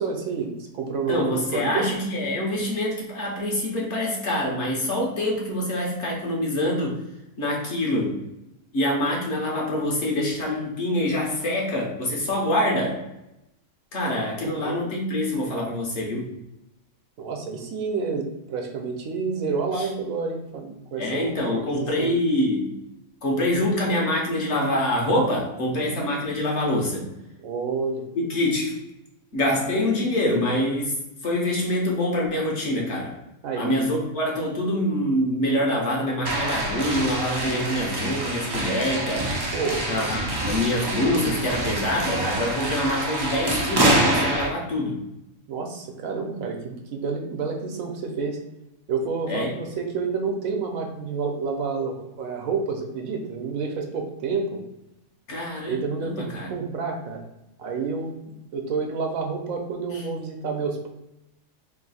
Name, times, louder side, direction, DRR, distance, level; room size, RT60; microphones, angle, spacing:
voice 1, 0.0-1.3 1.5-1.9 14.2-14.8 17.2-22.1 27.4-28.0 29.9-30.1 33.4-33.8 39.5-40.4 45.5-48.4 48.9-54.6 55.6-57.2 57.6-58.2 58.5-60.9, right 4 dB, 75° right, 3 dB, 1.1 m, -29 dB
voice 2, 1.1-7.0 7.4-8.2 8.7-13.0 13.9-16.3 19.7-19.9 21.0-22.8 23.2-27.1 28.1-28.8 29.3-31.0 31.2-33.2 33.5-39.5 39.9-45.0 49.3-49.5 55.3-56.5 59.9-60.0, left 1 dB, 55° left, -2 dB, 1.2 m, -25 dB
sound 1, 36.2-44.5, right 1 dB, 40° right, 0.3 m, -26 dB
3.2 x 2.7 x 4.0 m, 0.89 s
omnidirectional pair, 1.5 m